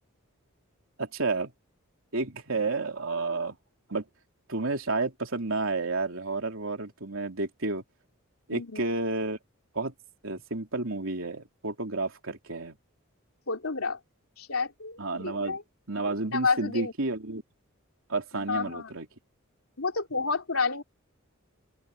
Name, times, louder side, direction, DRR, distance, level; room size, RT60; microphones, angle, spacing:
voice 1, 1.0-1.5 2.1-3.6 3.9-4.0 4.5-7.8 8.5-9.4 9.7-9.9 10.2-12.7 15.0-15.6 15.9-17.4 18.1-19.1, right 3 dB, 70° right, 3.4 m, -31 dB
voice 2, 8.5-8.8 13.5-14.0 14.4-15.6 16.3-16.9 18.3-18.9 19.8-20.8, left 4 dB, 80° left, 3.2 m, -30 dB
open air
head